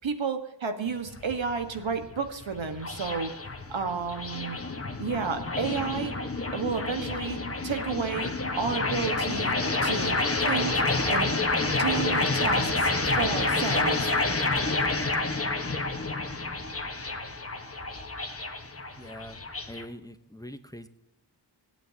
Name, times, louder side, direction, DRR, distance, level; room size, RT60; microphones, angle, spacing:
voice 1, 0.0-3.3 3.7-4.6 5.0-6.1 6.5-9.5 9.8-10.2 10.5-11.3 11.6-12.9 13.2-14.1, right 5 dB, 80° right, 6 dB, 1.6 m, -31 dB
sound 1, 0.9-19.8, left 3 dB, 30° left, 1.4 m, -29 dB
voice 2, 18.7-20.9, equal, 10° left, 9 dB, 0.9 m, -44 dB
25.0 x 9.1 x 2.9 m, 0.91 s
wide cardioid pair, 60°, 45 cm